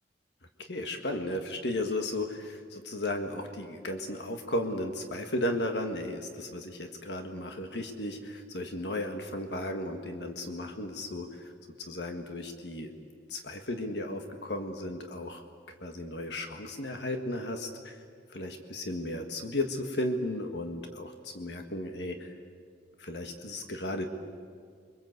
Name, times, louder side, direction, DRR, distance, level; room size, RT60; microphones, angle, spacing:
voice 1, 0.6-11.5 11.8-12.9 13.3-15.4 15.8-18.0 18.3-22.3 23.0-24.1, left 1 dB, 70° left, 5 dB, 1.8 m, -35 dB
29.0 x 24.0 x 8.2 m, 2.1 s
head